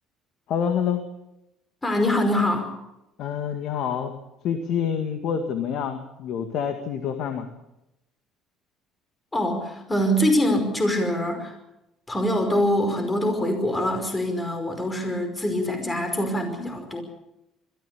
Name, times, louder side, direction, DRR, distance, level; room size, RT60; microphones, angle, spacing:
voice 1, 0.5-1.0 3.2-4.1 4.4-7.5, left 8 dB, 70° left, 7 dB, 2.0 m, -27 dB
voice 2, 1.8-2.7 9.3-11.5 12.1-17.0, left 1 dB, 20° left, 6 dB, 5.2 m, -24 dB
21.5 x 15.0 x 8.6 m, 0.90 s
supercardioid pair, 90°, 0 cm